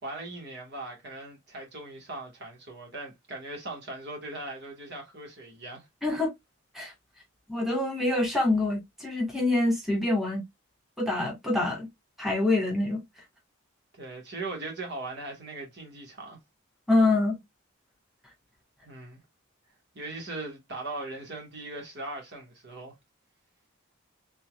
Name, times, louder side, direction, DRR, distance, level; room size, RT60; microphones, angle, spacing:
voice 1, 0.0-5.9 13.9-16.4 18.8-19.2 19.9-22.9, right 2 dB, 60° right, 1.7 m, -39 dB
voice 2, 7.5-10.4 11.0-11.9 12.2-13.0 16.9-17.4, left 2 dB, ahead, 1.7 m, -25 dB
4.1 x 3.7 x 2.4 m
head